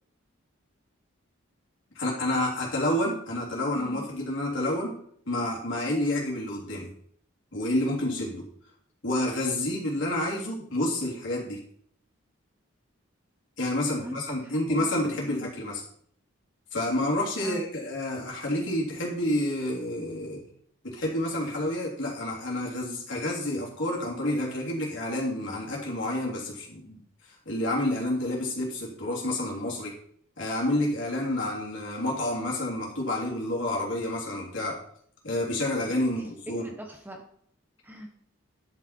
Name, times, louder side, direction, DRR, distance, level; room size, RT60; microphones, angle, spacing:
voice 1, 1.9-4.9 5.3-6.9 7.5-8.4 9.0-11.6 13.6-15.8 16.7-20.4 20.8-27.0 27.4-29.9 30.4-34.8 35.2-36.6, left 1 dB, 65° left, -3 dB, 3.0 m, -29 dB
voice 2, 3.7-4.1 14.0-15.5 17.4-17.7 35.8-37.2 37.8-38.1, equal, 10° right, 2 dB, 0.9 m, -43 dB
10.5 x 5.6 x 4.5 m, 0.64 s
head